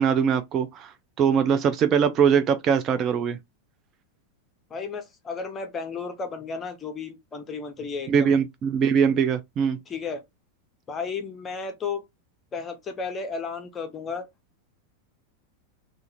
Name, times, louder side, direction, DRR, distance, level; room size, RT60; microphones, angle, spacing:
voice 1, 0.0-3.4 8.1-9.8, right 7 dB, 30° right, 0.3 m, -22 dB
voice 2, 4.7-8.3 9.9-10.2 10.9-12.0 12.5-14.3, left 5 dB, 20° left, 0.6 m, -33 dB
2.4 x 2.4 x 2.8 m
figure-of-eight pair, 90°, 0 cm